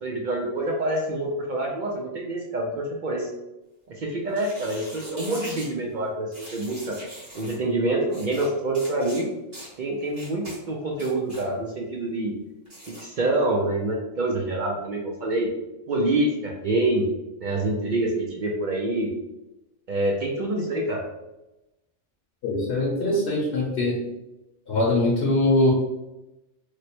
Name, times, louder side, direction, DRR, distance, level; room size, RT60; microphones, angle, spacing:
voice 1, 0.0-3.3 4.0-7.0 7.3-9.3 9.8-12.3 13.0-15.5 15.9-17.0 17.4-19.1 19.9-21.0, right 2 dB, 60° right, -1 dB, 0.5 m, -26 dB
sound 1, 4.3-5.7 6.3-7.6 8.1-8.5 8.7-9.2 9.5-9.7 10.1-10.6 10.9-11.5 12.7-13.0, right 1 dB, 35° right, 1.4 m, -41 dB
voice 2, 22.4-24.0 24.7-25.7, left 2 dB, 65° left, -4 dB, 1.0 m, -22 dB
3.1 x 2.1 x 4.2 m, 0.96 s
omnidirectional pair, 1.3 m